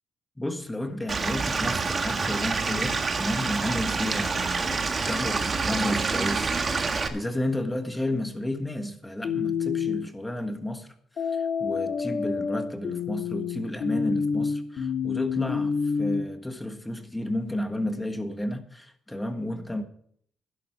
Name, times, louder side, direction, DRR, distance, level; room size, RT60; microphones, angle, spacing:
voice 1, 0.4-19.8, left 1 dB, 10° left, 1.5 m, -32 dB
Stream / Liquid, 1.1-7.1, right 4 dB, 35° right, 1.5 m, -27 dB
sound 1, 9.2-10.1 11.2-16.2, left 6 dB, 60° left, 2.4 m, -28 dB
12.0 x 10.5 x 4.6 m
cardioid pair, 90°, 0 cm